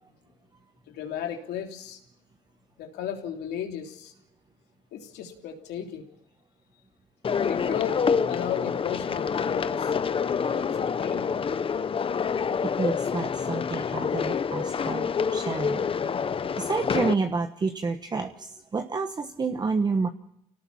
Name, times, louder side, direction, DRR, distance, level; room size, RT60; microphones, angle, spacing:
voice 1, 0.9-2.0 2.8-4.1 4.9-6.0 7.4-8.0 8.3-10.0 10.4-11.3, left 9 dB, 80° left, 3 dB, 3.4 m, -35 dB
sound 1, 7.2-17.1, left 6 dB, 35° left, 0.9 m, -27 dB
voice 2, 12.6-15.9 16.6-20.1, right 4 dB, 25° right, 7 dB, 1.2 m, -29 dB
26.5 x 18.0 x 7.1 m, 0.76 s
cardioid pair, 110°, 17 cm